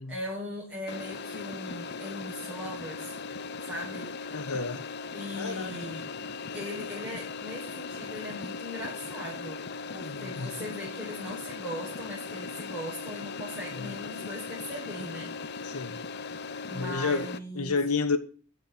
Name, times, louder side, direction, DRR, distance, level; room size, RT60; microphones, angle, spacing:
voice 1, 0.1-3.2 3.6-4.1 5.1-6.1 6.5-9.6 9.9-15.9 16.7-17.8, left 1 dB, ahead, 4.6 m, -39 dB
sound 1, 0.9-17.4, left 4 dB, 50° left, 0.6 m, -38 dB
voice 2, 4.3-4.8 5.4-5.7 10.0-10.5 13.8-13.9 15.7-16.0 16.7-17.3 17.5-18.2, left 4 dB, 85° left, 1.3 m, -30 dB
10.0 x 6.7 x 8.0 m
head